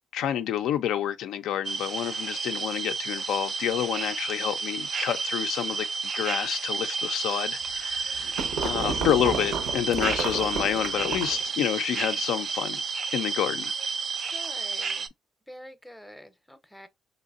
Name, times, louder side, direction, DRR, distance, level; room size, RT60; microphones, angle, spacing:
voice 1, 0.1-5.9 6.1-8.4 8.6-12.8 13.1-13.7, left 10 dB, 85° left, 0.3 m, -28 dB
sound 1, 1.6-15.1, right 5 dB, 50° right, 0.4 m, -31 dB
sound 2, 7.7-11.5, right 5 dB, 90° right, 0.6 m, -32 dB
voice 2, 14.3-15.1 15.5-16.9, equal, 5° left, 0.5 m, -46 dB
3.2 x 2.9 x 2.4 m
cardioid pair, 90°, 0 cm